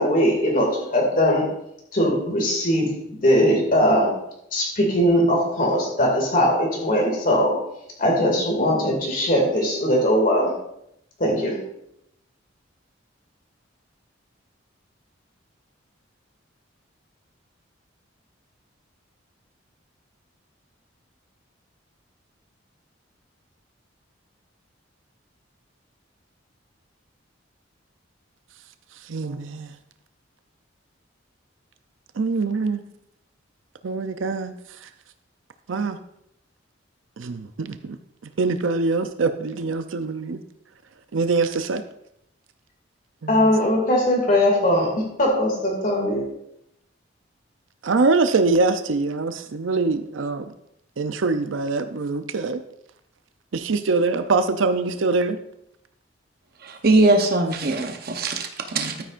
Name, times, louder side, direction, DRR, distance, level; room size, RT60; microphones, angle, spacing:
voice 1, 0.0-1.4 1.9-4.1 4.5-7.6 8.0-10.5 11.2-11.6 43.3-46.3, equal, 45° left, -1 dB, 2.3 m, -20 dB
voice 2, 29.0-29.8 32.2-32.8 33.8-34.9 35.7-36.0 37.2-38.0 38.4-40.4 41.1-41.8 43.2-43.5 47.8-50.5 51.0-52.6 53.5-55.4, right 3 dB, 75° right, 9 dB, 0.5 m, -24 dB
voice 3, 56.6-59.0, right 2 dB, 50° right, 4 dB, 0.9 m, -21 dB
12.5 x 9.4 x 2.5 m, 0.78 s
head